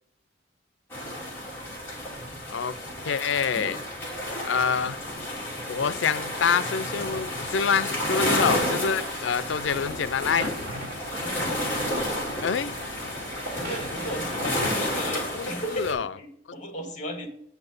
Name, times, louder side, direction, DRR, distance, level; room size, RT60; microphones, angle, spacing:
sound 1, 0.9-15.9, left 1 dB, 10° left, 3.2 m, -31 dB
voice 1, 3.1-3.8 4.4-5.0 5.7-10.5 12.4-12.8 15.3-16.1, left 6 dB, 80° left, 0.4 m, -26 dB
sound 2, 9.6-15.2, equal, 50° right, 4.2 m, -37 dB
voice 2, 11.1-11.6 13.6-17.3, equal, 40° left, 2.0 m, -35 dB
8.3 x 6.0 x 5.3 m
head